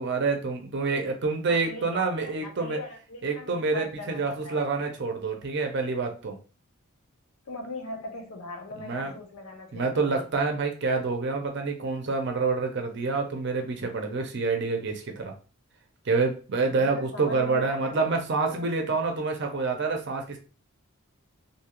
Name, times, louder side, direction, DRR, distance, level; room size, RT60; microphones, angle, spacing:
voice 1, 0.0-2.8 3.2-6.4 8.8-9.1 9.7-15.3 16.1-20.4, right 4 dB, 50° right, 4 dB, 0.6 m, -27 dB
voice 2, 1.4-4.6 7.5-10.3 16.8-18.1 18.5-18.7, left 2 dB, 75° left, 3 dB, 0.8 m, -40 dB
2.7 x 2.4 x 2.9 m, 0.36 s
head